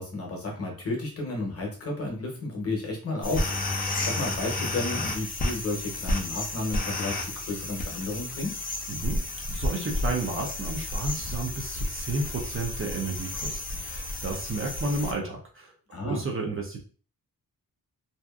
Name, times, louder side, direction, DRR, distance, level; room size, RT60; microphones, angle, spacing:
voice 1, 0.0-8.6 15.9-16.2, left 2 dB, 40° left, 0 dB, 0.8 m, -32 dB
sound 1, 3.2-15.1, left 2 dB, 25° left, 0.4 m, -32 dB
voice 2, 8.9-9.2 9.5-15.7 16.0-16.8, right 2 dB, 35° right, 0 dB, 0.5 m, -32 dB
2.7 x 2.4 x 2.3 m, 0.39 s
wide cardioid pair, 175°, 35 cm